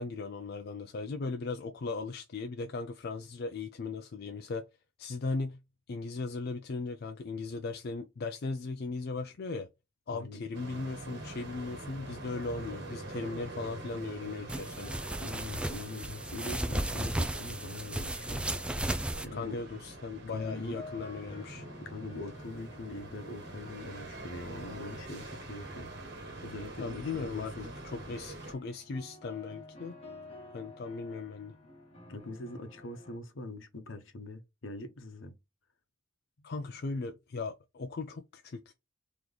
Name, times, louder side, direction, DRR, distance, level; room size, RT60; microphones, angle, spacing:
voice 1, 0.0-4.6 5.0-5.6 5.9-9.7 10.1-14.9 19.3-21.6 26.8-27.5 27.8-30.0 30.5-31.5 36.4-38.7, left 3 dB, 55° left, 0.4 m, -37 dB
voice 2, 10.1-10.4 15.2-18.5 19.2-19.6 20.3-20.8 21.8-27.8 32.1-35.4 36.4-36.5, left 2 dB, 70° left, 0.9 m, -43 dB
sound 1, 10.5-28.5, right 2 dB, 60° right, 1.4 m, -45 dB
sound 2, 14.5-19.3, right 1 dB, 5° right, 0.4 m, -34 dB
sound 3, 20.4-33.2, left 2 dB, 30° left, 1.2 m, -52 dB
3.9 x 3.0 x 3.2 m
head